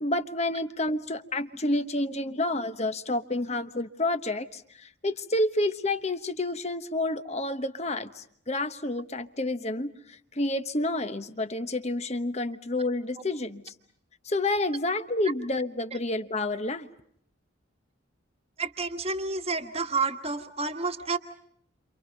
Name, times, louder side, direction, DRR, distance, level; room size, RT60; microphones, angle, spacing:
voice 1, 0.0-13.7 14.2-16.9, left 2 dB, 30° left, 10 dB, 1.1 m, -29 dB
voice 2, 18.6-21.2, right 4 dB, 30° right, 6 dB, 1.5 m, -30 dB
30.0 x 27.0 x 5.3 m, 0.68 s
head